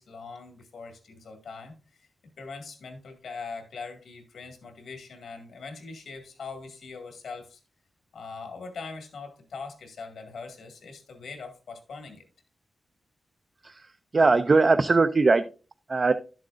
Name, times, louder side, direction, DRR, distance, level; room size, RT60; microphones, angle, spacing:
voice 1, 0.0-2.1 2.4-7.6 8.1-12.2, left 4 dB, 80° left, 5 dB, 2.0 m, -41 dB
voice 2, 13.6-15.4 15.9-16.1, right 3 dB, 30° right, 9 dB, 0.3 m, -21 dB
11.5 x 7.4 x 2.5 m, 0.35 s
wide cardioid pair, 170°, 0 cm